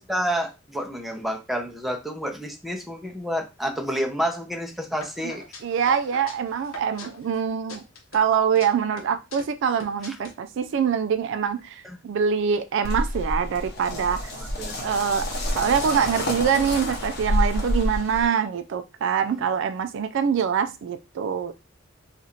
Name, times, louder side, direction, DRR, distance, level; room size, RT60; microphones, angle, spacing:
voice 1, 0.1-5.4 10.1-10.2 11.8-12.0 14.6-14.8 19.3-19.4, equal, ahead, 1 dB, 0.6 m, -29 dB
sound 1, 5.0-7.4 7.7-8.7 9.0-10.3, left 3 dB, 85° left, 0.8 m, -42 dB
voice 2, 5.6-7.8 8.1-14.3 14.8-15.3 15.6-21.5, right 7 dB, 60° right, 10 dB, 0.3 m, -24 dB
sound 2, 12.8-18.3, left 1 dB, 55° left, 0.9 m, -28 dB
2.7 x 2.5 x 4.2 m, 0.26 s
head